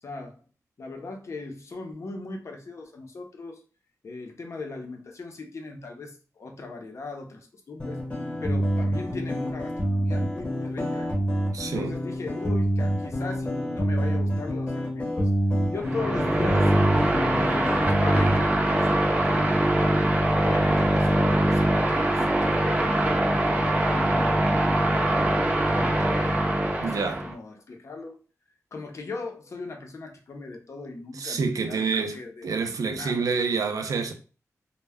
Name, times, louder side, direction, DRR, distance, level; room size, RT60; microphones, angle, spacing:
voice 1, 0.0-0.4 0.8-3.6 4.0-8.0 8.4-11.1 11.6-15.3 15.7-16.7 17.4-20.1 20.4-23.5 23.9-25.1 25.7-28.2 28.7-33.3, left 3 dB, 55° left, 0.5 m, -39 dB
sound 1, 7.8-18.4, equal, 20° left, 0.9 m, -27 dB
voice 2, 11.5-12.0 26.8-27.2 30.7-30.9 31.1-32.2 32.4-34.1, right 5 dB, 80° right, 0.4 m, -28 dB
sound 2, 15.8-27.3, right 1 dB, 25° right, 0.5 m, -23 dB
2.1 x 2.0 x 3.4 m
wide cardioid pair, 115°, 6 cm